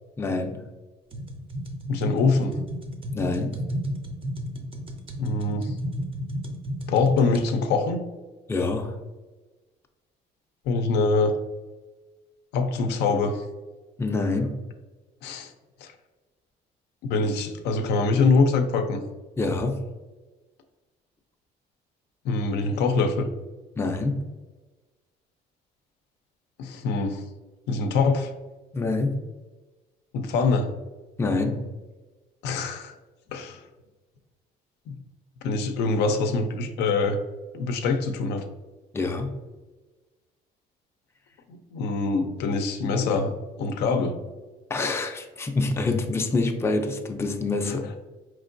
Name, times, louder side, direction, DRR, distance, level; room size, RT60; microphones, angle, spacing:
voice 1, 0.2-0.6 3.1-3.6 8.5-9.0 14.0-14.6 19.4-19.9 23.8-24.2 28.7-29.2 31.2-31.6 38.9-39.4 44.7-47.9, left 3 dB, 15° left, 4 dB, 0.4 m, -26 dB
sound 1, 1.1-7.4, equal, 30° right, 0.6 m, -33 dB
voice 2, 1.9-2.6 5.2-5.7 6.9-8.0 10.7-11.4 12.5-13.4 15.2-15.5 15.8-15.9 17.0-19.0 22.2-23.3 26.6-27.2 27.7-28.3 30.1-30.7 32.4-32.9 33.3-33.6 34.9-35.0 35.4-37.2 37.5-38.4 41.5-44.2, left 4 dB, 80° left, 6 dB, 0.5 m, -24 dB
4.4 x 3.1 x 2.5 m, 1.2 s
cardioid pair, 110°, 17 cm